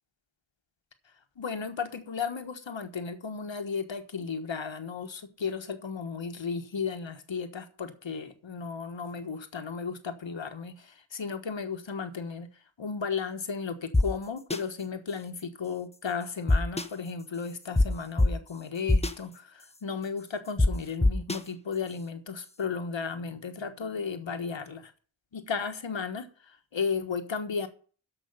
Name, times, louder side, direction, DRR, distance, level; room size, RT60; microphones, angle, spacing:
voice 1, 1.4-12.5 12.8-24.9 25.3-27.7, left 5 dB, 75° left, 8 dB, 1.4 m, -34 dB
sound 1, 13.9-14.0 14.5-14.6 16.5-16.8 17.8-17.9 18.2-18.3 18.9-19.1 20.6-20.7 21.0-21.4, left 2 dB, 15° left, 0.8 m, -21 dB
13.5 x 5.4 x 5.4 m, 0.41 s
wide cardioid pair, 65°, 46 cm